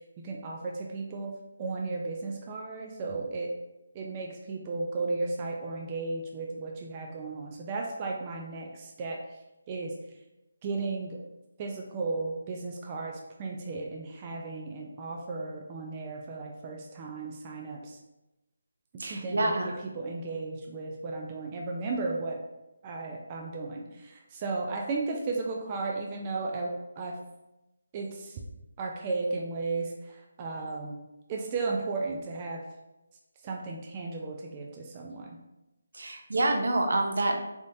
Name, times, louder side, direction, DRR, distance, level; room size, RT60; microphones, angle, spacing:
voice 1, 0.2-1.3 1.6-3.5 3.9-9.2 9.7-9.9 10.6-11.2 11.6-18.0 19.0-22.4 22.8-27.2 27.9-28.4 28.8-31.0 31.3-32.6 33.4-35.4, right 3 dB, 25° right, 0 dB, 0.4 m, -35 dB
voice 2, 19.0-19.8 35.9-37.4, right 2 dB, 70° right, 3 dB, 0.6 m, -27 dB
3.9 x 3.5 x 2.7 m, 0.97 s
figure-of-eight pair, 155°, 0 cm